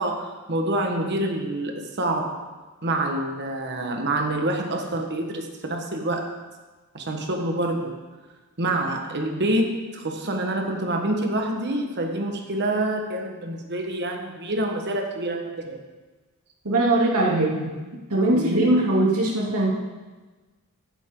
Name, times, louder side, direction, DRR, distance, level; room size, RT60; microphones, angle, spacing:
voice 1, 0.0-2.5 2.8-6.2 6.9-7.9 8.6-15.8 18.3-18.6, right 1 dB, 50° right, 3 dB, 1.4 m, -27 dB
voice 2, 16.6-17.7 18.1-19.7, right 2 dB, 85° right, -4 dB, 3.0 m, -21 dB
15.0 x 10.5 x 3.9 m, 1.3 s
head